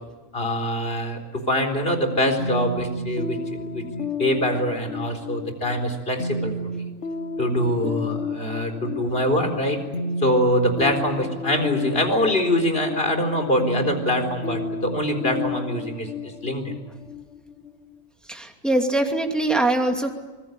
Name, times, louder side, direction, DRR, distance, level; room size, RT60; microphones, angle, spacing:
voice 1, 0.3-1.2 1.5-3.4 3.7-3.8 4.2-6.5 7.4-9.8 10.2-16.7 19.0-19.1, equal, 45° left, 5 dB, 4.4 m, -24 dB
sound 1, 2.4-18.0, left 2 dB, 65° left, 1.6 m, -32 dB
voice 2, 18.3-20.1, right 2 dB, ahead, 3 dB, 2.5 m, -22 dB
25.5 x 21.0 x 9.8 m, 1.3 s
omnidirectional pair, 1.4 m